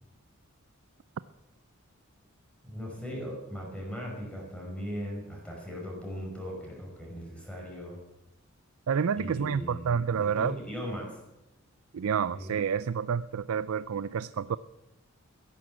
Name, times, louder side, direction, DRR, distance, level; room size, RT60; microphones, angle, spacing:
voice 1, 2.6-8.0 9.2-11.2 12.3-12.5, equal, 5° left, -2 dB, 5.5 m, -38 dB
voice 2, 8.9-10.5 11.9-14.6, right 7 dB, 80° right, 15 dB, 0.4 m, -29 dB
15.0 x 11.0 x 7.6 m, 0.97 s
head